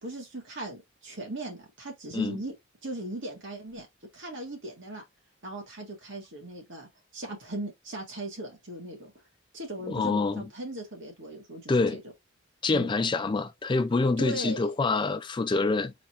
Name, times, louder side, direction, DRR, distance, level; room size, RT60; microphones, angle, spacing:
voice 1, 0.0-2.5 2.8-3.9 4.1-5.0 5.4-6.9 7.1-9.1 9.5-12.0 12.7-12.9 14.2-14.7, right 1 dB, 60° right, 2.2 m, -38 dB
voice 2, 9.9-10.4 11.7-12.0 12.6-15.9, left 3 dB, 20° left, 0.3 m, -26 dB
4.2 x 3.9 x 3.0 m
head